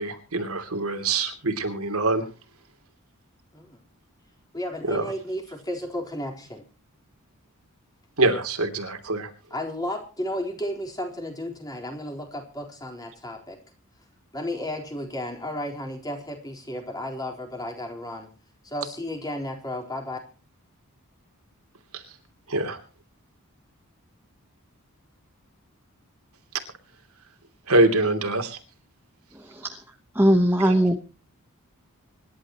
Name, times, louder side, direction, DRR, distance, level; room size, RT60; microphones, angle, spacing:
voice 1, 0.0-2.3 4.8-5.1 8.2-9.3 21.9-22.0 22.5-22.8 26.5-26.6 27.7-28.6 30.6-30.7, right 2 dB, 85° right, 6 dB, 2.9 m, -24 dB
voice 2, 4.5-6.6 9.5-13.6 14.3-18.3 18.6-20.2, left 1 dB, 15° left, 1 dB, 4.1 m, -33 dB
voice 3, 29.3-29.8 30.1-31.0, equal, 10° right, 4 dB, 1.1 m, -20 dB
26.0 x 11.5 x 3.0 m, 0.37 s
head